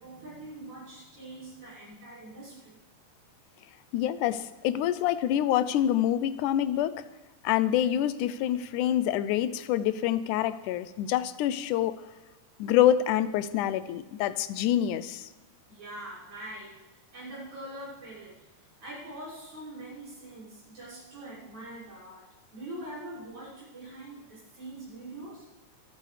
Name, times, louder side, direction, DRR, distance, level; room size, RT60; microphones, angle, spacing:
voice 1, 0.0-2.8 15.7-16.8 17.1-18.4 18.8-25.5, right 1 dB, 75° right, -8 dB, 7.6 m, -43 dB
voice 2, 3.9-7.1 7.4-12.0 12.6-15.3, left 11 dB, 90° left, 14 dB, 2.1 m, -26 dB
26.0 x 9.2 x 3.3 m, 1.1 s
omnidirectional pair, 3.5 m